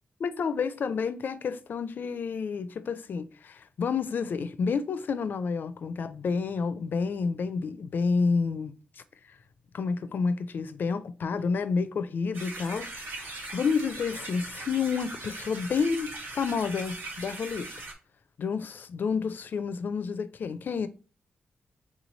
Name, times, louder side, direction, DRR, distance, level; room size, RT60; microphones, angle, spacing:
voice 1, 0.2-8.8 9.7-17.7 18.4-20.9, left 5 dB, 65° left, 0.4 m, -30 dB
sound 1, 12.3-17.9, right 2 dB, 75° right, 1.2 m, -40 dB
3.6 x 3.1 x 3.9 m
wide cardioid pair, 135°, 4 cm